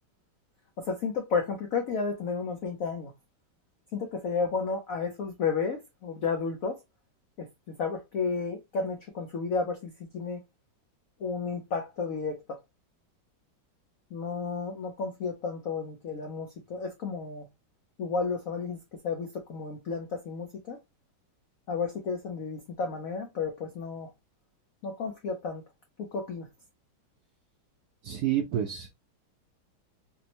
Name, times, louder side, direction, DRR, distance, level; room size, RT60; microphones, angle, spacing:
voice 1, 0.8-3.1 3.9-6.8 7.4-7.5 7.8-10.4 11.2-12.6 14.1-17.5 18.0-18.8 19.0-20.8 21.7-24.1 24.8-25.6 26.0-26.5, left 5 dB, 85° left, 0.7 m, -32 dB
voice 2, 28.0-28.9, right 10 dB, 75° right, 0.9 m, -29 dB
4.3 x 2.1 x 2.8 m
omnidirectional pair, 2.3 m